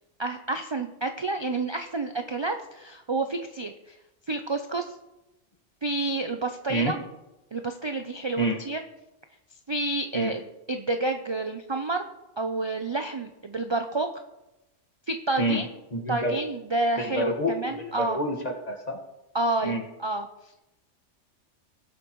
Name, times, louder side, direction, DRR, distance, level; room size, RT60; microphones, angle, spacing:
voice 1, 0.2-3.9 4.3-4.9 5.8-7.0 7.5-8.8 9.7-12.0 12.4-14.1 15.1-15.6 16.1-18.2 19.3-20.3, right 2 dB, 45° right, 6 dB, 0.3 m, -29 dB
voice 2, 15.4-16.4 17.0-19.0 19.6-19.8, equal, 35° left, 2 dB, 1.6 m, -28 dB
19.5 x 7.9 x 3.1 m, 0.95 s
omnidirectional pair, 1.3 m